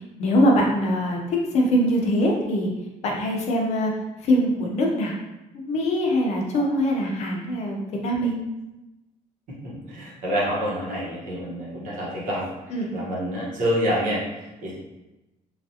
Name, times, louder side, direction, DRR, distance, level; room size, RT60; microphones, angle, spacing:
voice 1, 0.2-2.7 3.0-3.9 4.2-5.1 5.5-8.4 12.7-12.9, equal, 50° left, 0 dB, 0.6 m, -22 dB
voice 2, 9.6-12.5 12.9-14.2 14.6-14.7, equal, 65° right, -5 dB, 1.0 m, -27 dB
3.2 x 2.4 x 2.7 m, 1.0 s
cardioid pair, 170°, 14 cm